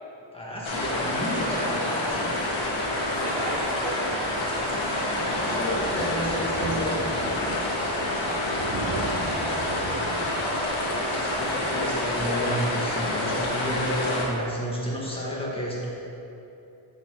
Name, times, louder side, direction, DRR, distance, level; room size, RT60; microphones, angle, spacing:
voice 1, 0.3-2.4 5.2-7.2 11.1-15.9, equal, 10° left, -7 dB, 1.4 m, -31 dB
sound 1, 0.6-14.2, left 1 dB, 70° left, 1.2 m, -27 dB
voice 2, 3.1-4.4 7.9-10.3, right 3 dB, 60° right, 1 dB, 0.6 m, -37 dB
Thunder, 3.2-12.6 12.9-13.2 13.5-13.6 13.8-13.9, right 2 dB, 85° right, 0.8 m, -39 dB
7.1 x 4.0 x 4.4 m, 2.9 s
wide cardioid pair, 115°, 48 cm